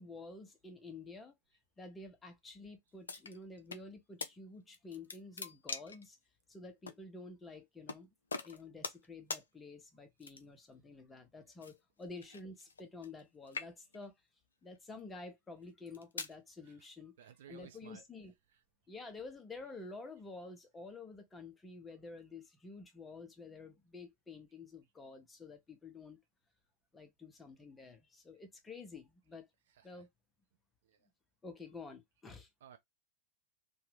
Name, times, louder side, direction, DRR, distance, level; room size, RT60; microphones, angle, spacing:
voice 1, 0.0-1.3 1.8-6.2 6.5-8.1 8.4-14.1 14.6-17.2 17.5-18.3 18.9-26.2 26.9-29.5 29.8-30.1 31.4-32.5, left 3 dB, 15° left, 0.8 m, -50 dB
sound 1, 3.1-3.8 4.2-4.3 4.7-6.1 6.9-7.0 7.9-8.0 8.3-9.1 9.3-9.5 10.2-10.6 11.6-13.2 13.5-14.1 14.8-15.0 15.7-16.4, left 4 dB, 70° left, 0.4 m, -43 dB
voice 2, 17.2-18.0 18.5-18.6 29.7-30.1 30.8-31.1 32.6-32.8, right 9 dB, 60° right, 0.5 m, -58 dB
2.8 x 2.3 x 3.2 m
figure-of-eight pair, 90°, 0 cm